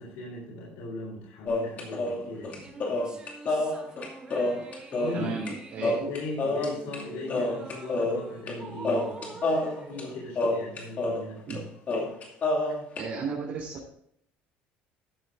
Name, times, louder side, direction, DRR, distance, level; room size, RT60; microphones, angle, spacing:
voice 1, 0.0-2.7 5.0-9.6 9.9-11.8, left 2 dB, 85° left, -4 dB, 3.8 m, -38 dB
sound 1, 1.5-5.5 5.8-7.0 7.3-8.6 8.8-11.2 11.5-11.6 11.9-13.0, left 2 dB, 40° left, 2.4 m, -28 dB
sound 2, 2.5-11.1, right 4 dB, 25° right, 2.0 m, -45 dB
voice 2, 5.1-6.1 11.5-11.6 13.0-13.9, right 4 dB, 50° right, -3 dB, 3.2 m, -34 dB
13.0 x 7.0 x 3.7 m, 0.67 s
cardioid pair, 125°, 4 cm